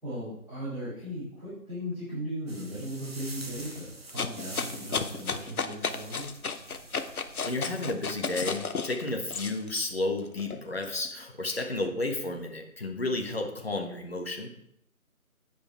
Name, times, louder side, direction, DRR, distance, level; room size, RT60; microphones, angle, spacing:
voice 1, 0.0-6.3, equal, ahead, -24 dB, 3.2 m, -37 dB
sound 1, 2.5-8.1, right 2 dB, 45° right, 1.0 m, -46 dB
sound 2, 4.2-9.8 10.3-11.7, left 5 dB, 75° left, 0.8 m, -33 dB
voice 2, 7.4-14.5, left 2 dB, 45° left, 2 dB, 1.3 m, -32 dB
9.1 x 5.1 x 4.6 m, 0.76 s
figure-of-eight pair, 160°, 44 cm